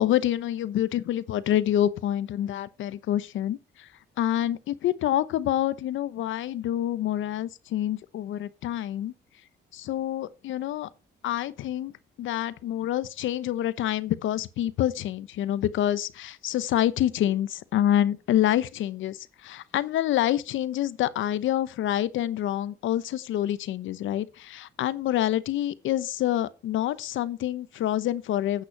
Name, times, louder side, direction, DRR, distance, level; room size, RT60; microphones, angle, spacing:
voice 1, 0.0-3.9 4.2-9.1 9.7-10.9 11.2-11.9 12.2-28.6, left 12 dB, 75° left, 0.8 m, -27 dB
9.1 x 8.3 x 4.6 m
cardioid pair, 90°, 20 cm